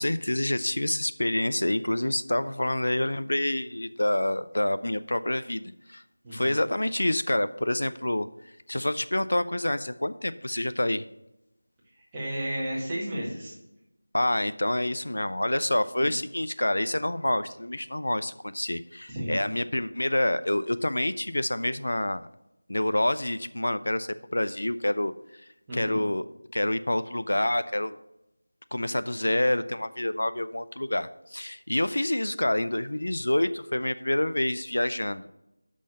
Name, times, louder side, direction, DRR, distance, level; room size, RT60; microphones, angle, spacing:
voice 1, 0.0-5.6 5.9-6.0 6.3-8.3 8.7-11.0 14.1-22.3 22.7-25.1 25.7-26.2 26.5-28.0 28.7-35.2, left 1 dB, 75° left, 13 dB, 0.4 m, -27 dB
voice 2, 6.2-6.5 12.1-13.6 16.0-16.1 19.1-19.4 25.7-26.0, equal, 10° right, -8 dB, 1.7 m, -33 dB
6.2 x 5.7 x 6.4 m, 0.90 s
figure-of-eight pair, 175°, 0 cm